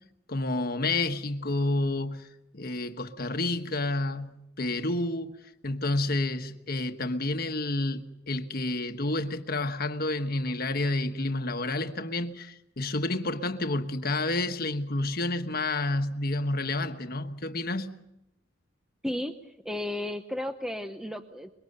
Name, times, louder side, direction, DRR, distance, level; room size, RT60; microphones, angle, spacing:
voice 1, 0.3-2.3 2.5-5.3 5.6-17.9, left 2 dB, 50° left, 1.3 m, -29 dB
voice 2, 19.0-19.4 19.6-21.5, left 1 dB, 5° right, 0.8 m, -33 dB
24.0 x 23.0 x 6.8 m
head